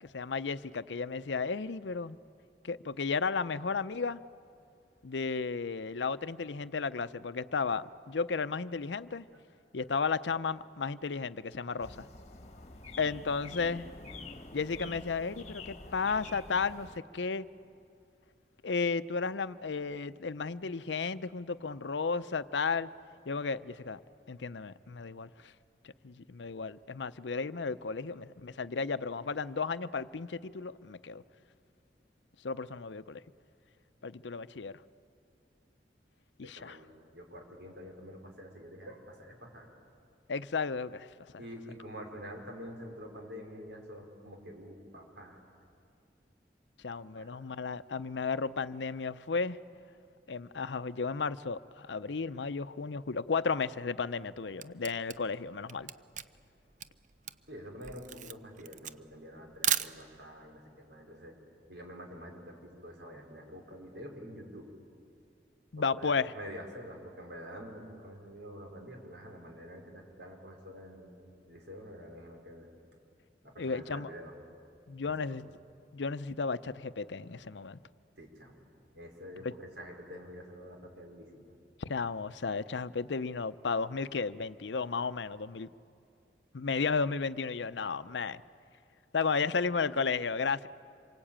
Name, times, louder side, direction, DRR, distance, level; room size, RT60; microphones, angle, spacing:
voice 1, 0.0-2.2 2.6-4.2 5.0-9.2 9.7-12.1 13.0-13.9 14.5-17.5 18.6-22.9 23.3-24.0 24.3-25.5 26.0-31.2 32.4-33.2 34.0-34.8 36.4-36.8 40.3-41.1 46.8-49.6 50.3-55.9 65.7-66.3 73.6-74.1 74.9-75.5 75.9-77.8 79.4-79.5 81.8-85.7 86.5-88.4 89.1-90.7, left 4 dB, 90° left, 0.7 m, -33 dB
sound 1, 11.8-17.0, left 3 dB, 40° left, 1.6 m, -47 dB
voice 2, 36.4-39.7 41.4-45.4 47.1-47.4 57.5-61.3 61.7-64.7 65.9-71.1 71.5-72.7 73.4-74.3 75.0-75.1 78.2-78.7 78.9-81.5, equal, 75° right, 4.8 m, -47 dB
Camera, 54.2-60.4, right 10 dB, 45° right, 0.6 m, -36 dB
27.0 x 23.5 x 8.8 m
head